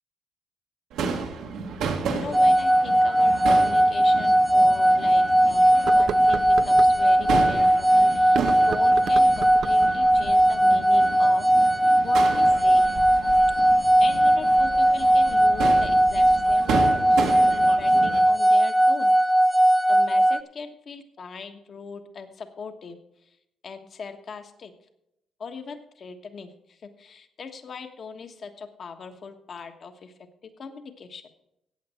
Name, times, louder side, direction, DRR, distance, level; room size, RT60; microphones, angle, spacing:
Crowd / Fireworks, 0.9-18.2, right 5 dB, 90° right, 1.9 m, -33 dB
voice 1, 2.1-11.4 12.0-12.8 14.0-17.5 17.8-19.1 19.9-23.0 23.6-24.7 25.4-30.1 30.6-31.2, left 5 dB, 50° left, 7 dB, 1.3 m, -39 dB
sound 1, 2.3-20.4, right 1 dB, 5° right, 0.4 m, -19 dB
sound 2, 3.8-3.9 4.4-4.5 5.7-6.9 8.2-9.9, right 8 dB, 65° right, 0.4 m, -33 dB
14.5 x 8.7 x 4.3 m, 0.81 s
cardioid pair, 90°, 0 cm